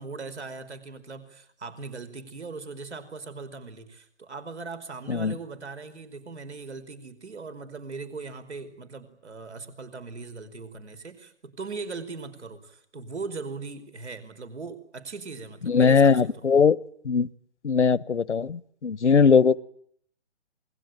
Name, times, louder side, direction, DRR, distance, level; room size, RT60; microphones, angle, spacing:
voice 1, 0.0-16.4, right 4 dB, 75° right, 11 dB, 5.1 m, -39 dB
voice 2, 15.6-17.3 17.6-19.6, left 5 dB, 85° left, 22 dB, 1.1 m, -20 dB
27.5 x 21.5 x 9.2 m, 0.65 s
hypercardioid pair, 145°, 34 cm